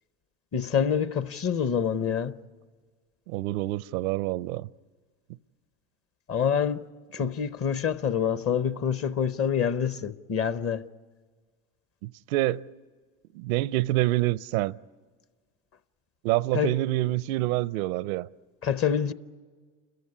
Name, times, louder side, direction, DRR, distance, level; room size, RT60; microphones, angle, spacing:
voice 1, 0.5-2.3 6.3-6.8 7.1-10.8 16.5-16.7 18.6-19.1, left 7 dB, 35° left, 0.9 m, -26 dB
voice 2, 3.3-4.7 12.0-12.6 13.3-14.8 16.2-18.3, right 17 dB, 85° right, 0.6 m, -27 dB
29.5 x 14.5 x 9.7 m
supercardioid pair, 95°, 41 cm